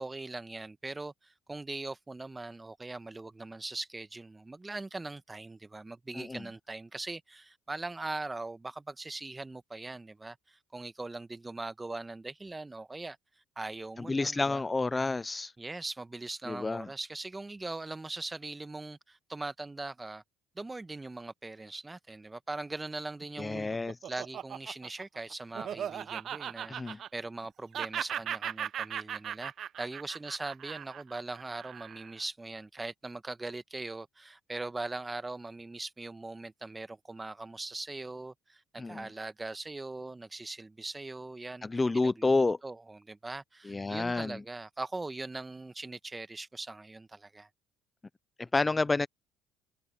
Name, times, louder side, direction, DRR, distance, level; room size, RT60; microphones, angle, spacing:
voice 1, 0.0-13.2 13.6-14.6 15.6-20.2 20.5-23.7 24.1-42.3 42.6-47.5, right 2 dB, 20° right, 1.3 m, -41 dB
voice 2, 14.1-15.5 16.5-16.9 23.4-24.0 26.7-27.0 38.8-39.1 41.6-42.6 43.7-44.4 48.4-49.1, left 3 dB, 20° left, 0.5 m, -29 dB
Laughter, 23.2-27.5 27.7-32.2, right 9 dB, 55° right, 0.9 m, -38 dB
supercardioid pair, 70°, 0 cm